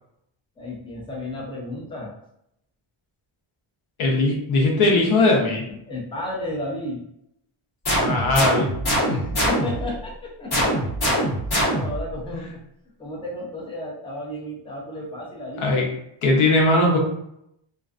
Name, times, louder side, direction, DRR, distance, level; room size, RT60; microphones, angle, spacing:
voice 1, 0.6-2.1 5.9-7.0 9.0-10.9 11.6-12.6 13.0-15.8, left 1 dB, 10° left, -4 dB, 0.5 m, -33 dB
voice 2, 4.0-5.6 7.9-9.2 12.3-12.4 15.6-15.9 16.2-17.0, left 2 dB, 75° left, 0 dB, 0.8 m, -20 dB
sound 1, 7.8-9.9 10.5-12.1, equal, 50° left, 1.1 m, -23 dB
2.4 x 2.3 x 2.4 m, 0.77 s
wide cardioid pair, 145°, 49 cm